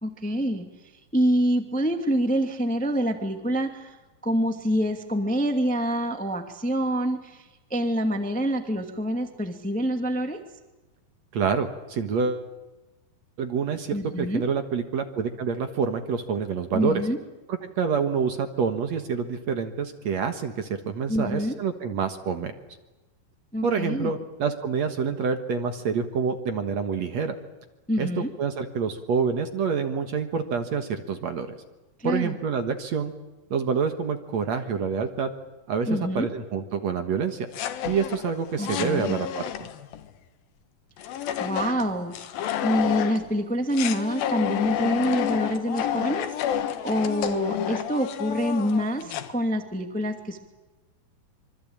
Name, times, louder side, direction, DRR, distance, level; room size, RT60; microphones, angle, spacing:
voice 1, 0.0-0.7 1.1-4.0 4.2-10.4 13.9-14.4 16.7-17.2 21.1-21.6 23.5-24.1 27.9-28.3 32.0-32.3 35.8-36.3 38.6-39.2 41.4-42.1 42.6-50.4, equal, 5° left, 5 dB, 1.3 m, -26 dB
voice 2, 11.3-12.5 13.4-17.0 17.5-22.5 23.6-27.3 28.0-31.6 32.0-33.1 33.5-35.3 35.7-37.5 37.9-39.7, right 6 dB, 55° right, 7 dB, 2.4 m, -27 dB
sound 1, 37.5-40.0 41.0-43.3 43.7-49.3, left 10 dB, 80° left, 3.1 m, -30 dB
26.0 x 25.0 x 8.8 m, 1.1 s
omnidirectional pair, 4.1 m